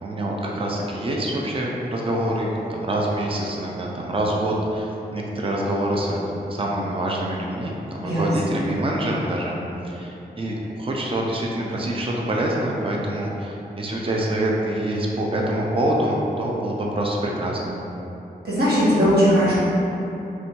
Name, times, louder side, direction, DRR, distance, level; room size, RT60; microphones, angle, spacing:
voice 1, 0.0-9.6 9.9-17.8, right 1 dB, 35° right, -2 dB, 0.5 m, -25 dB
voice 2, 8.0-8.6 18.4-19.5, equal, 75° right, -9 dB, 1.4 m, -19 dB
3.4 x 2.6 x 4.5 m, 3.0 s
wide cardioid pair, 90°, 17 cm